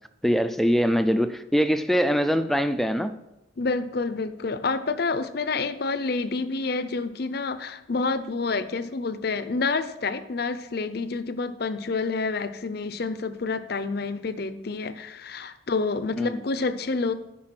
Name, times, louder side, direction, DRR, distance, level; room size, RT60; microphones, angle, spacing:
voice 1, 0.2-3.1 16.2-16.4, equal, ahead, 0.3 m, -23 dB
voice 2, 3.6-17.1, left 4 dB, 50° left, 0.6 m, -28 dB
8.6 x 5.5 x 5.9 m
head